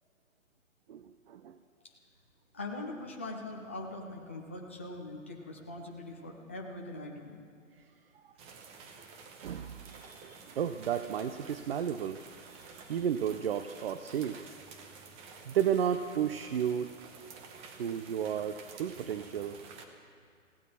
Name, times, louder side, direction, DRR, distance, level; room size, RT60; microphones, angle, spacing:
voice 1, 0.9-1.6 8.1-8.2 9.4-14.5 15.5-16.9 17.8-19.6, right 9 dB, 45° right, 10 dB, 0.6 m, -33 dB
voice 2, 2.5-7.4, left 2 dB, 10° left, -1 dB, 0.3 m, -42 dB
sound 1, 8.4-19.9, right 5 dB, 15° right, 0.8 m, -51 dB
20.5 x 16.0 x 4.2 m, 2.2 s
figure-of-eight pair, 130°, 40 cm